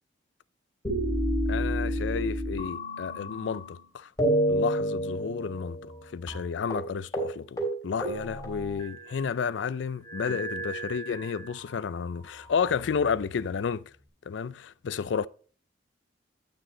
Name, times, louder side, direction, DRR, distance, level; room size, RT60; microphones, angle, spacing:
sound 1, 0.8-3.8 4.2-6.0 6.3-6.4 6.7-6.9 7.1-7.3 7.6-9.3 10.0-11.6 12.3-13.3, right 1 dB, 20° left, 3.4 m, -30 dB
voice 1, 1.5-4.1 4.5-5.8 6.1-13.8 14.3-15.3, left 6 dB, 85° left, 0.4 m, -31 dB
9.8 x 6.4 x 4.1 m
head